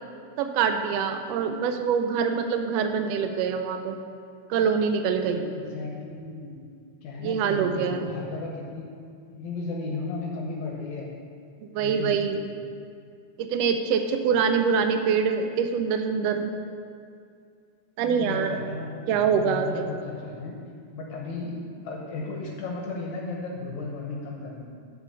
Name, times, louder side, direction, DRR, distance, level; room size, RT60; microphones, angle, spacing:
voice 1, 0.4-4.0 4.5-5.4 7.2-8.1 11.6-12.4 13.4-16.5 18.0-18.5 19.1-19.9, right 6 dB, 85° right, 7 dB, 1.4 m, -25 dB
voice 2, 5.3-6.6 7.0-8.9 9.3-11.1 11.8-12.5 14.7-14.9 18.0-20.5 20.9-24.7, left 3 dB, 75° left, -1 dB, 2.2 m, -35 dB
8.0 x 5.4 x 6.8 m, 2.3 s
omnidirectional pair, 3.4 m